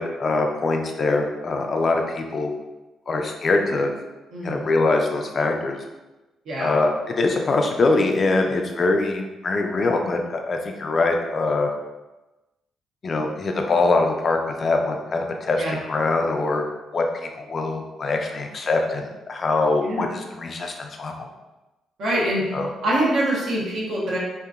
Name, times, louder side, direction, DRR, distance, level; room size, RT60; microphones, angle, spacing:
voice 1, 0.0-2.5 3.1-3.9 4.4-5.8 6.6-11.7 13.0-16.6 16.9-21.3 22.5-22.7, left 3 dB, 40° left, 3 dB, 0.3 m, -23 dB
voice 2, 6.5-6.8 15.6-15.8 19.8-20.1 22.0-22.5 22.8-24.2, right 1 dB, 75° right, -5 dB, 0.9 m, -24 dB
2.8 x 2.5 x 2.4 m, 1.1 s
cardioid pair, 90°, 0 cm